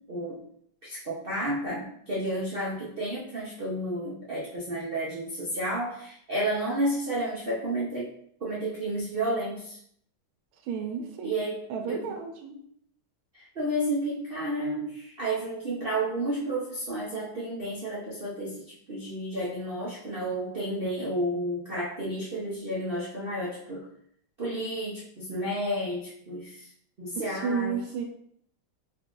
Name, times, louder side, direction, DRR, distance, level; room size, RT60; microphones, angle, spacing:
voice 1, 0.1-0.4 0.8-8.1 8.4-9.8 11.2-11.6 11.9-12.2 13.3-18.6 18.9-23.9 24.4-26.7 27.0-27.8, right 1 dB, 65° right, -6 dB, 0.5 m, -31 dB
voice 2, 10.7-11.4 11.7-12.6 27.3-28.0, right 5 dB, 85° right, 4 dB, 1.6 m, -32 dB
4.2 x 2.5 x 3.7 m, 0.66 s
omnidirectional pair, 2.3 m